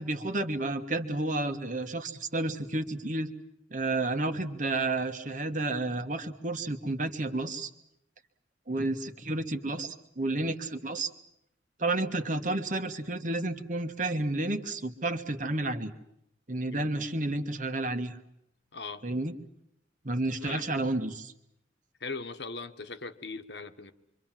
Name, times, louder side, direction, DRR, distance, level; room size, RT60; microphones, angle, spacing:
voice 1, 0.0-3.3 3.7-7.7 8.7-11.1 11.8-15.9 16.5-18.2 19.0-19.3 20.0-21.3, right 2 dB, 45° right, 8 dB, 1.7 m, -31 dB
voice 2, 18.7-19.0 20.4-20.6 22.0-23.9, left 4 dB, 65° left, 9 dB, 1.4 m, -39 dB
26.5 x 25.0 x 7.6 m, 0.80 s
head